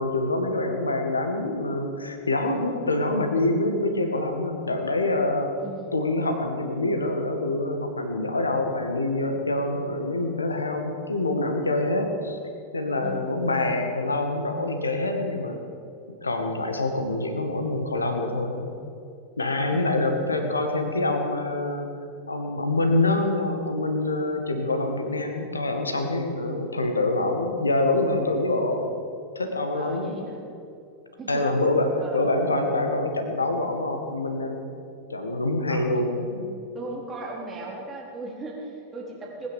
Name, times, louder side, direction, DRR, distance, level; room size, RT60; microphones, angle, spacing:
voice 1, 0.0-5.5 5.9-12.4 12.7-15.6 16.1-18.7 19.4-21.9 22.3-28.9 29.4-30.2 31.3-34.6 35.1-36.5, left 2 dB, 80° left, 5 dB, 1.9 m, -26 dB
voice 2, 2.5-2.9 5.6-5.9 9.7-10.0 13.0-13.4 19.7-20.3 24.1-24.5 29.7-30.5 31.2-31.5 32.0-32.4 35.7-36.1 36.7-39.5, right 2 dB, 20° right, -2 dB, 3.9 m, -38 dB
20.0 x 9.8 x 7.3 m, 2.6 s
figure-of-eight pair, 90°, 0 cm